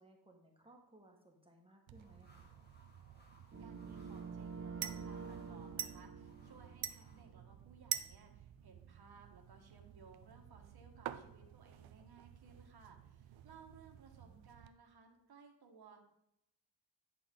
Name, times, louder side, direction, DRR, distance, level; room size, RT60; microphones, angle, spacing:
voice 1, 0.0-2.5 14.2-14.5, right 1 dB, 10° right, 1 dB, 1.6 m, -63 dB
sound 1, 1.9-7.2, equal, 20° left, 2.1 m, -68 dB
sound 2, 1.9-14.7, right 11 dB, 80° right, 0.7 m, -49 dB
sound 3, 3.5-7.5, right 5 dB, 30° right, 1.1 m, -48 dB
voice 2, 3.6-16.0, right 5 dB, 55° right, 2 dB, 1.6 m, -61 dB
10.0 x 6.8 x 3.8 m, 0.80 s
wide cardioid pair, 105°, 45 cm